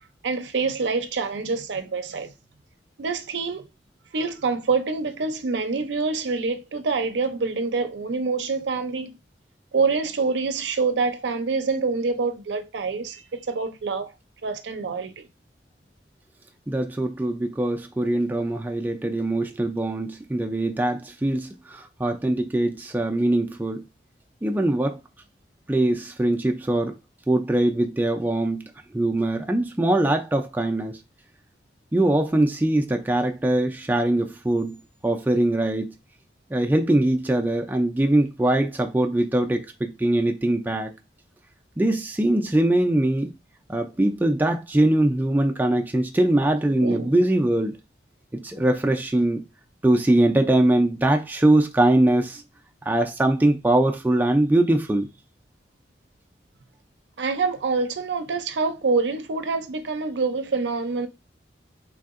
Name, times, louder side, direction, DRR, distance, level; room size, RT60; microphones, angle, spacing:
voice 1, 0.2-2.3 3.0-3.7 4.1-9.2 9.7-14.1 14.4-15.3 46.8-47.1 57.2-61.1, right 4 dB, 80° right, 0.5 m, -26 dB
voice 2, 16.7-23.8 24.4-25.0 25.7-26.9 27.3-28.6 28.9-31.0 31.9-34.8 35.0-35.9 36.5-40.9 41.8-43.3 43.7-47.7 48.3-49.4 49.8-52.4 52.8-55.1, right 1 dB, 10° right, 0.3 m, -22 dB
3.4 x 2.7 x 2.4 m
head